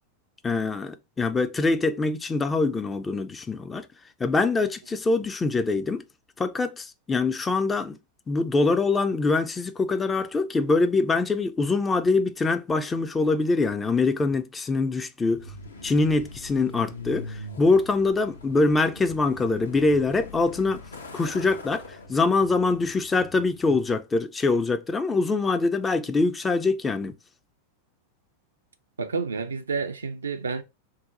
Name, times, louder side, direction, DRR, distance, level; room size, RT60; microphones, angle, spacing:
voice 1, 0.4-3.9 4.2-6.0 6.4-8.0 8.3-15.5 15.8-20.8 21.1-21.8 22.1-27.1, left 3 dB, 15° left, 0.4 m, -24 dB
Truck, 15.3-24.0, left 2 dB, 70° left, 0.7 m, -42 dB
voice 2, 29.0-30.6, right 4 dB, 70° right, 0.4 m, -29 dB
2.7 x 2.0 x 3.8 m
figure-of-eight pair, 90°, 0 cm